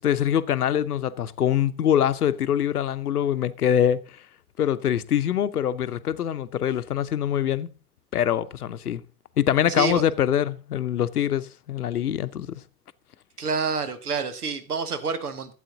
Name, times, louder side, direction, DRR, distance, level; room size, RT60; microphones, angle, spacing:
voice 1, 0.0-4.0 4.6-7.7 8.1-9.0 9.4-12.6, left 10 dB, 80° left, 0.7 m, -24 dB
voice 2, 13.4-15.5, right 4 dB, 80° right, 1.3 m, -28 dB
12.5 x 8.1 x 3.9 m
figure-of-eight pair, 80°, 45 cm